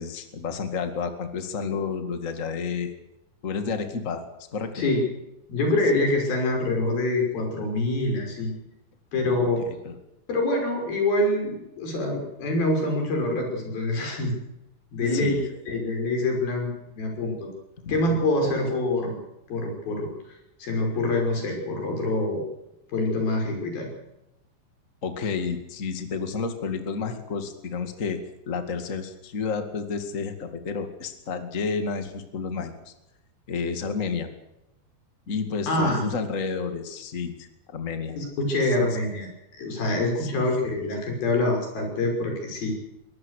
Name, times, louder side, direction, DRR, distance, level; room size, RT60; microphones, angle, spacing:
voice 1, 0.0-2.9 3.4-4.2 4.5-4.7 9.6-9.9 15.0-15.4 17.8-17.9 18.4-18.5 25.0-28.2 28.5-32.9 33.5-34.3 35.3-38.2 38.6-38.7 40.2-40.4, left 5 dB, 70° left, 7 dB, 0.7 m, -30 dB
voice 2, 4.7-5.1 5.5-8.5 9.1-9.6 10.3-14.3 14.9-15.4 15.7-17.5 17.9-19.2 19.5-20.1 20.6-22.4 22.9-23.9 35.7-36.1 38.2-39.3 39.6-42.8, left 2 dB, 50° left, 2 dB, 7.4 m, -25 dB
23.5 x 19.0 x 6.6 m, 0.89 s
omnidirectional pair, 5.4 m